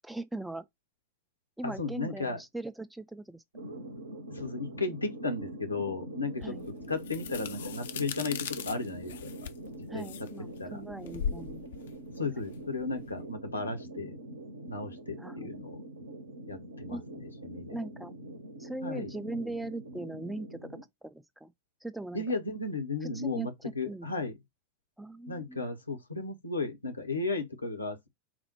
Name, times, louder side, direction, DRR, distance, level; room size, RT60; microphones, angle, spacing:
voice 1, 0.0-0.7 1.6-3.4 6.4-6.7 9.9-11.6 15.2-15.5 16.9-17.0 17.7-18.1 18.6-20.6 21.0-21.5 21.8-22.3 23.0-24.1 25.0-25.6, right 2 dB, 5° right, 0.3 m, -39 dB
voice 2, 1.6-2.4 4.3-6.5 6.9-9.3 9.9-10.0 10.6-10.8 12.2-14.2 14.7-15.8 16.5-17.8 18.8-19.1 22.1-24.4 25.3-28.1, left 3 dB, 80° left, 0.9 m, -35 dB
sound 1, 3.5-20.8, right 1 dB, 70° right, 0.7 m, -44 dB
sound 2, 6.4-13.2, left 8 dB, 60° left, 0.4 m, -40 dB
4.3 x 2.0 x 4.2 m
figure-of-eight pair, 90°, 0 cm